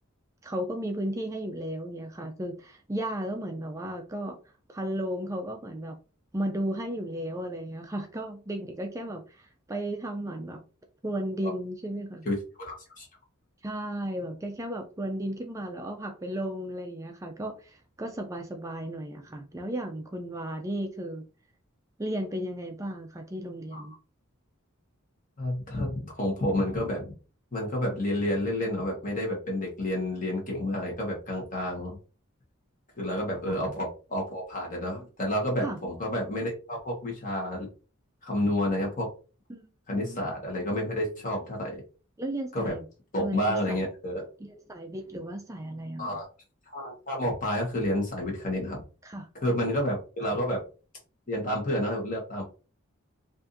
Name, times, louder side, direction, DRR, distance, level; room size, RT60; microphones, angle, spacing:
voice 1, 0.4-4.4 4.7-6.0 6.3-10.6 11.0-12.3 13.6-21.2 22.0-23.9 33.5-33.6 35.6-35.8 39.5-40.2 42.2-42.8 43.2-43.8 44.4-46.2 49.0-49.3, right 1 dB, 15° right, 4 dB, 0.4 m, -34 dB
voice 2, 12.2-13.1 23.7-23.8 25.4-27.1 27.5-32.0 33.0-37.7 38.2-39.1 39.9-41.8 42.5-42.8 43.1-44.3 46.0-46.3 46.7-48.8 49.4-50.6 51.3-52.4, left 1 dB, 40° left, -1 dB, 1.2 m, -30 dB
4.6 x 2.6 x 2.6 m, 0.34 s
head